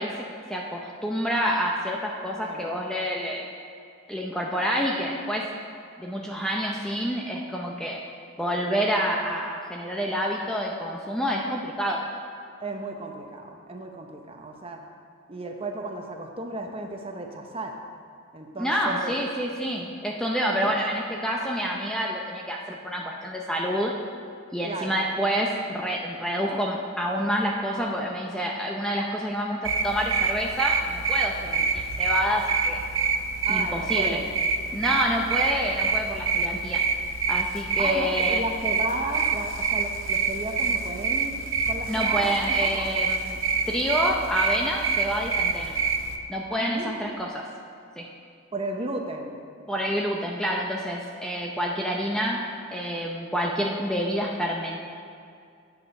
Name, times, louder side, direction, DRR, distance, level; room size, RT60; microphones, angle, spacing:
voice 1, 0.0-3.5 4.1-5.5 6.0-8.0 8.4-12.0 18.6-23.9 24.5-31.3 31.7-32.8 33.5-34.2 34.7-36.8 37.3-38.4 41.9-43.4 43.7-45.7 46.3-47.5 48.0-48.1 49.7-52.4 52.7-54.8, equal, 5° left, -1 dB, 0.6 m, -28 dB
voice 2, 2.4-2.7 12.6-14.9 15.3-17.8 18.3-19.1 20.6-20.8 24.6-25.0 31.4-31.7 33.5-34.3 37.8-42.9 46.5-47.1 48.5-49.4, right 2 dB, 25° right, 3 dB, 0.8 m, -34 dB
sound 1, 29.6-46.2, right 5 dB, 60° right, 0.6 m, -27 dB
9.2 x 8.3 x 5.4 m, 2.4 s
head